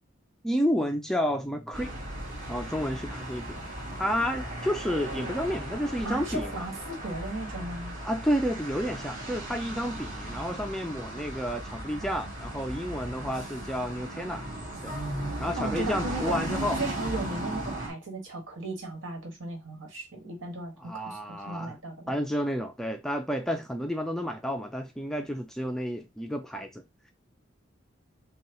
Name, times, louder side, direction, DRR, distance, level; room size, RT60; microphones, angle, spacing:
voice 1, 0.4-1.9 2.5-3.6 4.0-6.6 8.0-14.5 14.8-15.0 15.4-16.8 20.8-21.8 22.1-26.8, equal, ahead, 0.4 m, -30 dB
sound 1, 1.7-17.9, right 1 dB, 40° right, 1.9 m, -36 dB
voice 2, 6.0-7.9 15.6-16.4 16.8-22.1, right 2 dB, 70° right, 1.7 m, -36 dB
5.6 x 2.3 x 3.0 m
head